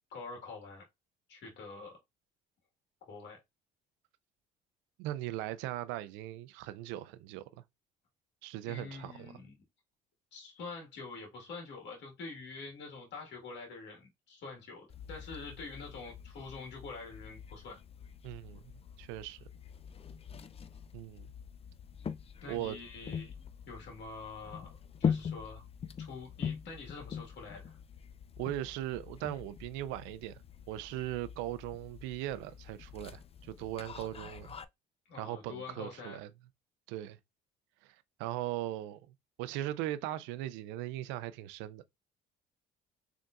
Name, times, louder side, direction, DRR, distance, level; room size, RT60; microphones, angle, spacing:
voice 1, 0.1-0.8 1.3-2.0 3.1-3.4 8.7-9.5 10.3-17.8 22.4-25.6 26.0-27.8 35.1-36.2, left 4 dB, 65° left, 1.8 m, -46 dB
voice 2, 5.0-7.4 8.4-9.4 18.2-18.6 19.0-19.4 20.9-21.3 22.5-22.8 28.4-30.4 30.7-34.6 35.2-36.3 36.9-37.2 37.8-39.0 39.4-41.8, right 14 dB, 85° right, 0.5 m, -39 dB
sound 1, 14.9-34.6, left 7 dB, 30° left, 0.4 m, -42 dB
3.9 x 3.4 x 2.5 m
supercardioid pair, 80°, 19 cm